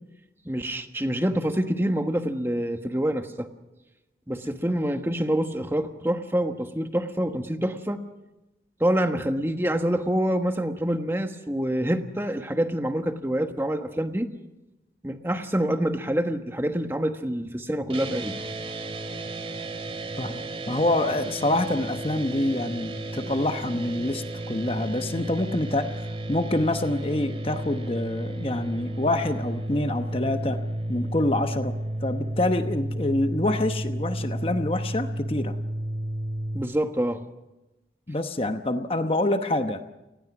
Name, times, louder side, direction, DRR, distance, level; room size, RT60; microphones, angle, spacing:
voice 1, 0.4-3.5 4.3-8.0 8.8-14.3 15.0-18.4 36.5-37.2, right 1 dB, 15° right, 6 dB, 1.3 m, -26 dB
sound 1, 17.9-36.6, right 1 dB, 35° right, 2.5 m, -32 dB
voice 2, 20.2-30.6 30.9-31.8 32.0-35.6 38.1-39.8, left 1 dB, 30° left, 8 dB, 1.0 m, -26 dB
29.0 x 19.5 x 6.1 m, 0.99 s
head